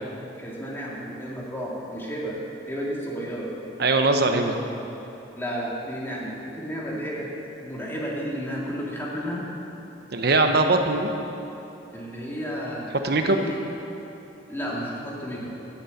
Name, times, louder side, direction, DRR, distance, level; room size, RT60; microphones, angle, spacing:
voice 1, 0.4-2.4 2.7-3.5 5.3-7.3 7.6-9.4 11.9-13.6 14.5-15.6, equal, 15° left, -5 dB, 2.3 m, -32 dB
voice 2, 3.8-4.6 10.1-11.1 13.0-13.4, right 2 dB, 60° right, 6 dB, 0.9 m, -21 dB
13.0 x 7.1 x 7.9 m, 3.0 s
head